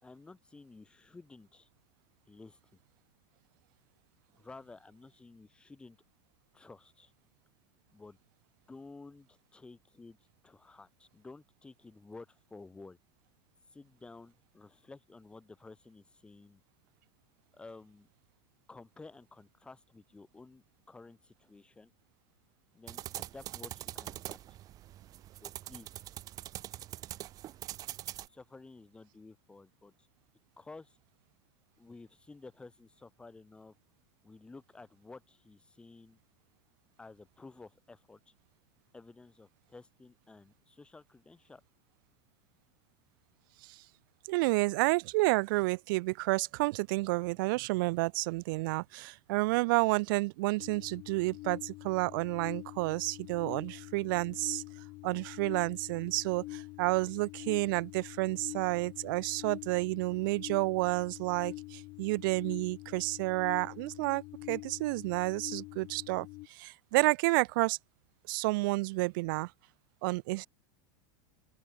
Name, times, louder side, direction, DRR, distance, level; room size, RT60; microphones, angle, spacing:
voice 1, 0.0-1.7 2.3-2.6 4.4-6.0 6.5-7.1 7.9-8.2 8.7-10.2 10.4-13.0 13.7-16.6 17.5-18.1 18.7-21.9 22.7-24.4 25.4-26.0 28.3-30.1 30.6-31.0 31.8-33.7 34.2-36.2 37.0-38.3 38.9-41.6, left 3 dB, 5° left, 6.2 m, -53 dB
sound 1, 22.9-28.3, right 13 dB, 25° right, 2.1 m, -43 dB
voice 2, 44.3-54.6 55.0-67.8 68.3-69.5 70.0-70.5, right 23 dB, 45° right, 0.9 m, -30 dB
sound 2, 50.6-66.5, left 21 dB, 30° left, 1.2 m, -46 dB
open air
supercardioid pair, 180°, 16 cm